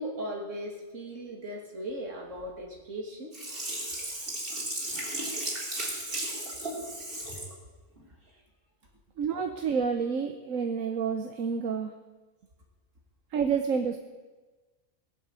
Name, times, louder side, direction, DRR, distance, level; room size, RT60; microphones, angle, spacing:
voice 1, 0.0-3.3, equal, 70° right, 0 dB, 3.1 m, -37 dB
Sink (filling or washing), 3.3-7.5 8.0-8.1, right 1 dB, 45° right, 4.0 m, -35 dB
voice 2, 9.2-11.9 13.3-14.0, right 6 dB, 85° right, 6 dB, 1.3 m, -29 dB
20.0 x 7.6 x 8.2 m, 1.2 s
omnidirectional pair, 1.3 m